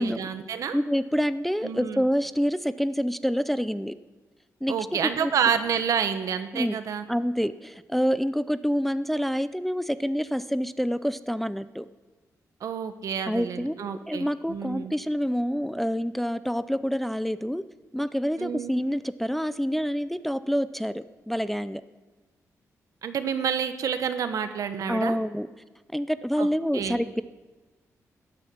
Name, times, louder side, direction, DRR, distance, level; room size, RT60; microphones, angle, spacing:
voice 1, 0.0-0.8 1.6-2.1 4.7-7.0 12.6-14.9 18.4-18.7 23.0-25.2 26.4-26.5 26.7-27.0, right 7 dB, 70° right, 9 dB, 1.2 m, -29 dB
voice 2, 0.7-3.9 4.6-4.7 5.0-5.3 6.5-6.8 7.1-11.9 13.3-17.6 17.9-21.8 24.9-25.5 25.9-27.2, equal, 5° left, 13 dB, 0.4 m, -27 dB
16.5 x 10.5 x 7.2 m, 1.2 s
wide cardioid pair, 135°, 6 cm